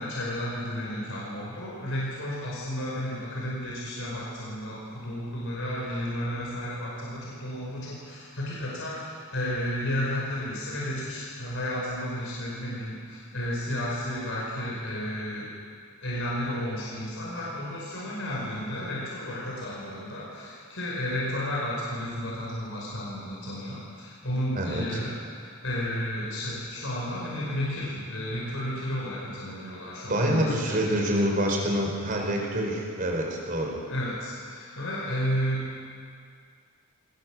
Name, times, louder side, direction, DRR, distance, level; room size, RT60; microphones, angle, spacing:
voice 1, 0.0-15.5 16.0-31.1 33.9-35.8, equal, 65° left, -5 dB, 5.3 m, -32 dB
voice 2, 24.5-25.0 30.1-33.8, equal, 40° right, 0 dB, 4.6 m, -26 dB
24.0 x 19.0 x 7.5 m, 2.2 s
head